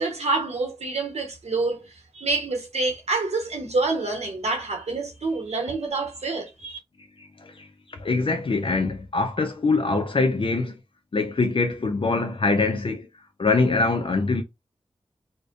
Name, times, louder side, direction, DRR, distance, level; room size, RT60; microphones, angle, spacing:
voice 1, 0.0-6.8, right 3 dB, 75° right, 0.8 m, -27 dB
voice 2, 7.2-10.7 11.1-13.1 13.4-14.4, left 3 dB, 55° left, 0.5 m, -24 dB
2.6 x 2.1 x 2.4 m
cardioid pair, 45°, 11 cm